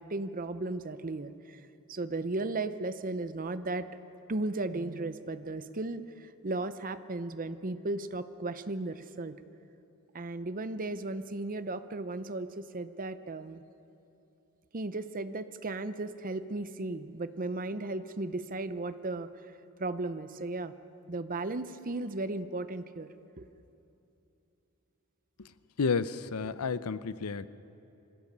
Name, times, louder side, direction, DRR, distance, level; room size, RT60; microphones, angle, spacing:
voice 1, 0.0-1.6 1.9-3.9 4.3-9.3 10.1-13.6 14.7-19.3 19.8-20.7 21.1-23.1 23.4-23.5, right 2 dB, 40° right, 12 dB, 0.7 m, -35 dB
voice 2, 25.8-27.5, left 5 dB, 85° left, 15 dB, 0.6 m, -31 dB
25.0 x 16.0 x 6.8 m, 2.8 s
head